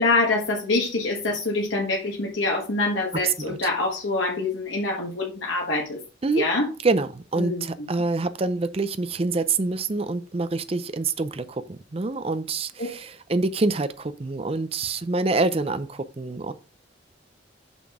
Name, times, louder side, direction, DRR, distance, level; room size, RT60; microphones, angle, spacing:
voice 1, 0.0-6.0 6.3-6.7 7.4-7.6, left 2 dB, 85° left, 1.4 m, -25 dB
voice 2, 3.2-3.6 6.2-6.5 6.8-16.5, right 3 dB, 30° right, 0.5 m, -26 dB
6.0 x 5.8 x 3.6 m
head